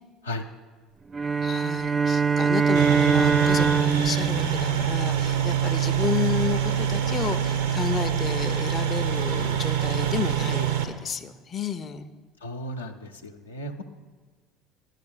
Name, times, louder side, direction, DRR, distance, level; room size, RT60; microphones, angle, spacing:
sound 1, 1.1-5.6, right 6 dB, 25° right, 0.3 m, -23 dB
voice 1, 1.4-12.1, left 6 dB, 30° left, 8 dB, 0.5 m, -31 dB
sound 2, 2.8-10.8, right 9 dB, 70° right, 0.8 m, -25 dB
voice 2, 12.4-13.8, equal, 80° left, 3 dB, 0.6 m, -35 dB
10.5 x 5.8 x 7.2 m, 1.4 s
figure-of-eight pair, 65°, 0 cm